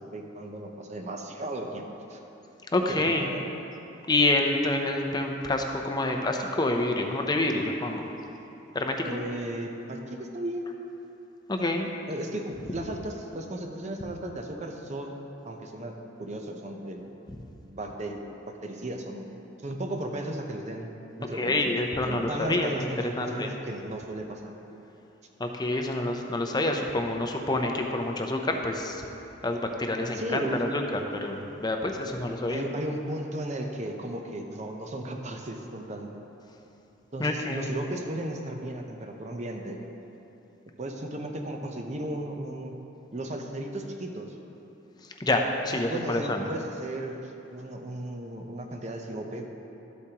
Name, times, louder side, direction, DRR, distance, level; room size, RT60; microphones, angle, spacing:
voice 1, 0.0-2.2 2.9-3.5 9.0-10.7 12.1-15.2 15.4-17.0 17.6-18.2 18.6-19.3 19.6-20.9 21.2-21.8 22.0-24.5 30.1-30.6 32.5-36.1 37.1-39.8 40.8-42.8 43.1-44.4 45.9-49.5, right 1 dB, 35° right, 3 dB, 0.7 m, -35 dB
voice 2, 2.7-3.3 4.1-8.1 8.7-9.2 11.5-11.9 21.3-23.5 25.4-29.0 29.4-32.6 37.2-37.7 45.2-46.5, left 2 dB, 20° left, 3 dB, 0.6 m, -27 dB
12.5 x 8.3 x 2.9 m, 3.0 s
head